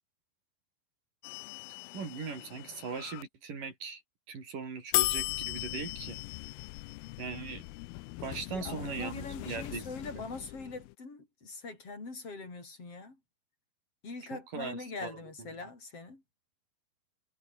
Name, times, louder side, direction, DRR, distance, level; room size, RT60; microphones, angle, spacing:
sound 1, 1.2-3.2 4.9-10.9, left 23 dB, 80° left, 2.2 m, -37 dB
voice 1, 1.9-4.0 4.3-6.2 7.2-7.7 8.2-9.9 14.3-15.1, right 5 dB, 60° right, 6.7 m, -39 dB
voice 2, 8.5-13.2 14.0-16.2, left 3 dB, 40° left, 7.9 m, -43 dB
omnidirectional pair, 4.3 m